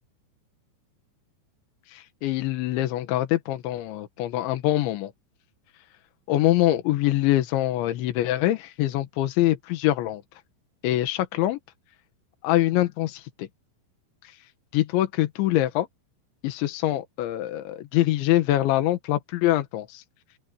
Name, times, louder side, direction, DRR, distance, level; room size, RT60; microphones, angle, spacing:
voice 1, 1.9-5.1 6.3-10.2 10.8-11.6 12.4-13.5 14.7-15.9 16.4-20.0, left 14 dB, 85° left, 3.7 m, -24 dB
open air
omnidirectional pair, 5.3 m